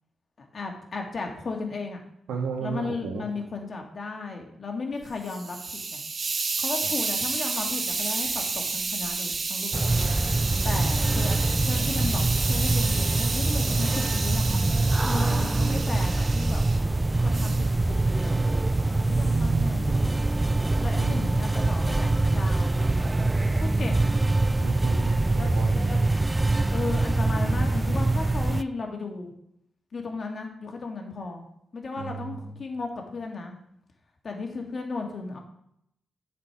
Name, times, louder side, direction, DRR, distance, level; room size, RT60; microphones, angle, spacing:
voice 1, 0.4-2.0 2.6-6.0 6.6-9.8 10.6-16.6 17.2-18.5 18.9-19.8 20.8-23.3 23.6-24.1 25.4-25.5 25.8-26.0 26.7-29.3 29.9-31.4 31.7-33.5 34.2-35.4, left 3 dB, 50° left, 2 dB, 2.2 m, -35 dB
voice 2, 2.3-3.3 10.3-11.0 19.1-20.1 21.0-21.2 24.6-26.0 32.0-32.3, right 5 dB, 90° right, 2 dB, 1.7 m, -34 dB
Hiss, 5.0-16.8 17.3-17.7, right 4 dB, 50° right, 1.1 m, -31 dB
sound 1, 9.7-28.6, right 2 dB, 20° right, 0.4 m, -24 dB
7.7 x 5.3 x 6.2 m, 0.74 s
supercardioid pair, 55°, 0 cm